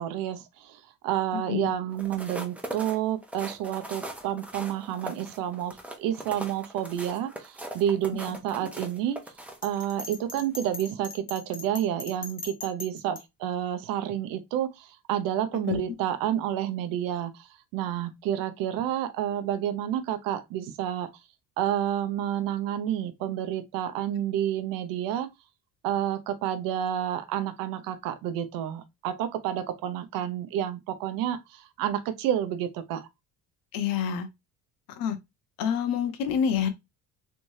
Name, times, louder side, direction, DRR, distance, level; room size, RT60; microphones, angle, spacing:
voice 1, 0.0-9.2 9.6-21.1 21.6-25.3 25.8-33.1, right 11 dB, 85° right, 0.7 m, -30 dB
sound 1, 1.9-10.1 10.6-10.8, right 1 dB, 5° right, 0.8 m, -40 dB
Bell, 9.6-13.2, left 3 dB, 25° left, 1.0 m, -40 dB
voice 2, 33.7-34.3 34.9-35.2 35.6-36.7, left 7 dB, 80° left, 0.9 m, -27 dB
3.4 x 3.2 x 2.7 m
cardioid pair, 125°, 34 cm